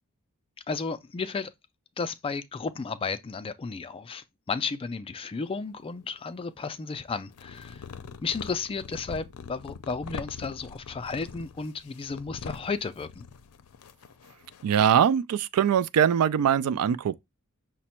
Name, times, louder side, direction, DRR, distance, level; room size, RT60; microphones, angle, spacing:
voice 1, 0.7-1.5 2.0-7.8 8.2-13.2, left 4 dB, 25° left, 0.3 m, -33 dB
sound 1, 5.5-6.4 7.1-14.9, left 5 dB, 85° left, 0.5 m, -43 dB
voice 2, 14.6-17.2, right 8 dB, 80° right, 0.3 m, -22 dB
5.9 x 2.1 x 4.2 m
head